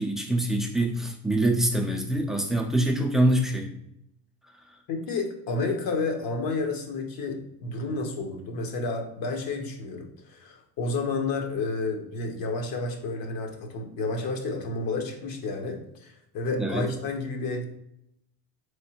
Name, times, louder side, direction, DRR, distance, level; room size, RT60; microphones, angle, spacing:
voice 1, 0.0-3.7 4.4-4.8 16.6-16.9, right 1 dB, ahead, 1 dB, 0.4 m, -25 dB
voice 2, 4.9-17.7, left 3 dB, 50° left, 3 dB, 1.0 m, -31 dB
4.1 x 3.4 x 2.9 m, 0.78 s
cardioid pair, 125°, 43 cm